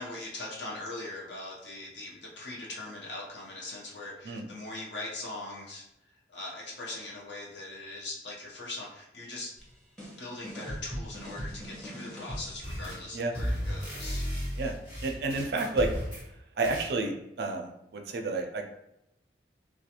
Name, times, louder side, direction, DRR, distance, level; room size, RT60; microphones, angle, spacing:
voice 1, 0.0-5.8 6.3-9.5 10.2-14.2, left 2 dB, 80° left, -3 dB, 0.8 m, -41 dB
sound 1, 9.6-13.1, equal, 5° left, 0.8 m, -41 dB
sound 2, 12.6-13.1 13.3-16.3 16.6-16.9, equal, 30° left, 1.2 m, -34 dB
voice 2, 15.0-15.9 16.6-18.7, right 3 dB, 60° right, 4 dB, 0.4 m, -30 dB
2.3 x 2.2 x 2.8 m, 0.84 s
head